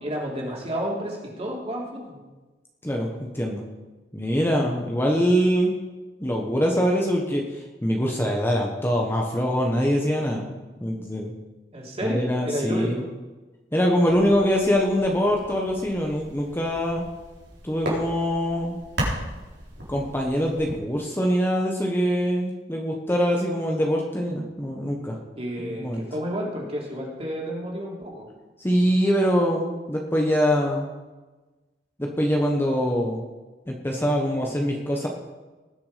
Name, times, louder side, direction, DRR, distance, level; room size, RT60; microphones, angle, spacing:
voice 1, 0.0-2.2 4.4-4.5 11.7-13.1 25.4-28.3, equal, 35° right, -2 dB, 3.4 m, -31 dB
voice 2, 4.1-5.8 6.2-10.5 10.8-11.3 12.0-13.0 13.7-17.0 17.6-18.8 19.9-25.2 25.6-26.0 28.6-30.9 32.0-33.2 33.7-35.1, equal, 15° left, 0 dB, 1.2 m, -23 dB
sound 1, 14.1-20.8, right 1 dB, 80° right, 4.3 m, -35 dB
19.5 x 7.0 x 5.1 m, 1.2 s
head